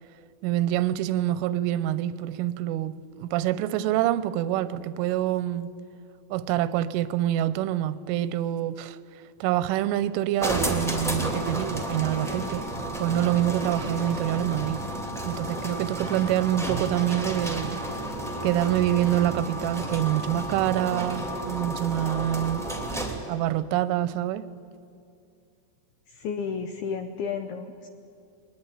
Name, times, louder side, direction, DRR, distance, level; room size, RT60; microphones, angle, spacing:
voice 1, 0.4-5.7 6.3-9.0 9.4-12.7 13.0-14.8 15.2-17.8 18.4-22.7 23.3-24.5, right 13 dB, 90° right, 3.3 m, -26 dB
sound 1, 10.4-23.3, right 1 dB, ahead, 1.0 m, -31 dB
voice 2, 26.1-27.9, left 6 dB, 80° left, 2.3 m, -32 dB
22.5 x 19.5 x 9.9 m
omnidirectional pair, 5.6 m